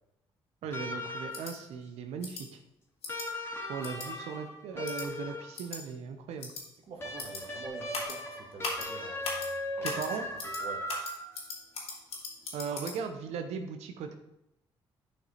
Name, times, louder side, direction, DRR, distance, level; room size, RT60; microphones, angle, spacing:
voice 1, 0.6-2.6 3.7-6.5 9.8-10.3 12.5-14.1, right 6 dB, 80° right, 6 dB, 0.8 m, -38 dB
sound 1, 0.7-1.7 3.1-5.6 7.0-11.5 12.8-12.9, left 1 dB, 20° left, 2.4 m, -38 dB
sound 2, 1.3-1.5 2.2-2.4 3.0-3.3 3.8-4.1 4.8-5.0 5.5-5.8 6.4-6.6 7.2-7.4 7.9-8.2 8.6-8.9 9.2-9.5 9.8-10.1 10.4-10.6 10.9-12.9, left 3 dB, 70° left, 2.4 m, -38 dB
voice 2, 6.9-9.9 10.6-10.9, right 4 dB, 60° right, 3 dB, 1.8 m, -46 dB
10.5 x 5.2 x 4.3 m, 0.86 s
supercardioid pair, 60°, 11 cm